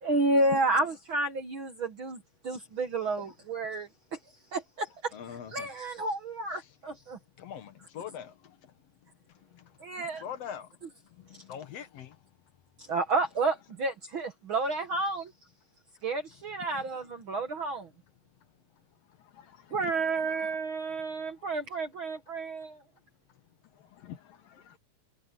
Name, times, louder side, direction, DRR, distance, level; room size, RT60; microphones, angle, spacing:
voice 1, 0.0-4.2 4.5-7.2 9.8-10.2 11.3-11.4 12.8-15.3 16.0-17.9 19.7-22.8, right 2 dB, 55° right, 1.5 m, -31 dB
voice 2, 5.1-5.7 7.4-8.6 9.5-9.7 10.2-10.7 11.2-12.2, left 8 dB, 60° left, 1.9 m, -42 dB
voice 3, 19.3-19.9 20.2-20.5 23.8-24.8, left 11 dB, 85° left, 3.9 m, -49 dB
omnidirectional pair, 3.9 m